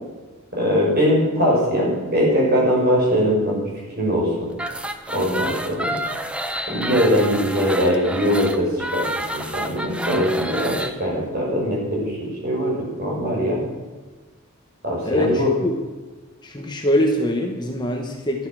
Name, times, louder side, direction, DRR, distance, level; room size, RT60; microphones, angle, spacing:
voice 1, 0.5-3.7 4.0-4.5 5.1-6.0 6.7-9.1 9.3-10.7 11.0-13.6 14.8-15.5, equal, 45° right, -3 dB, 6.2 m, -21 dB
sound 1, 4.5-10.9, right 1 dB, 5° right, 0.7 m, -29 dB
voice 2, 15.0-15.7 16.4-18.5, left 1 dB, 20° left, 2 dB, 1.2 m, -23 dB
12.5 x 12.5 x 6.3 m, 1.3 s
head